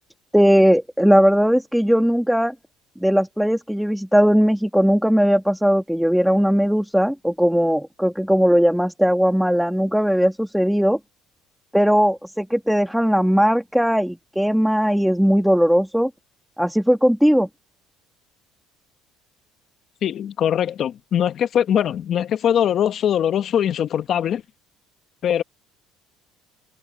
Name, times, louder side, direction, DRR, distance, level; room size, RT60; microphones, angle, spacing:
voice 1, 0.3-2.5 3.0-11.0 11.7-16.1 16.6-17.5, equal, ahead, 1.4 m, -18 dB
voice 2, 20.0-24.4 25.2-25.4, left 9 dB, 45° left, 1.2 m, -21 dB
cardioid pair, 140°, 0 cm